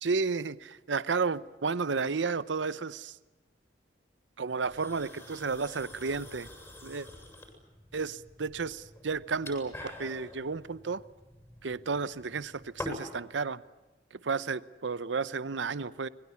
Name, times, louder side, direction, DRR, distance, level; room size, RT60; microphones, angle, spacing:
voice 1, 0.0-3.2 4.4-6.5 6.8-7.1 7.9-11.0 11.6-13.6 14.1-16.1, right 4 dB, 70° right, 16 dB, 0.8 m, -32 dB
sound 1, 4.6-13.2, left 2 dB, 15° left, 7.3 m, -46 dB
26.5 x 22.0 x 8.5 m, 1.1 s
head